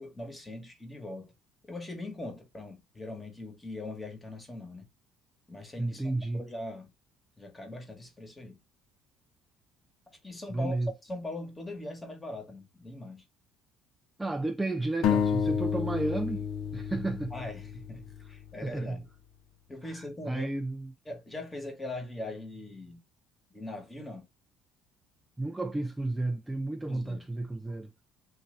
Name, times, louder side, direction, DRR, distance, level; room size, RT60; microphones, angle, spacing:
voice 1, 0.0-1.3 1.6-4.9 5.5-6.9 7.4-8.6 10.1-13.2 17.3-19.1 19.7-20.5 21.0-23.0 23.5-24.3 26.9-27.3, left 2 dB, 15° left, 1.2 m, -41 dB
voice 2, 5.8-6.4 10.5-10.9 14.2-16.5 16.7-17.3 18.6-19.0 20.3-20.9 25.4-28.0, right 2 dB, 10° right, 0.3 m, -32 dB
sound 1, 15.0-18.7, left 7 dB, 65° left, 0.4 m, -30 dB
3.1 x 2.7 x 3.6 m
cardioid pair, 120°, 0 cm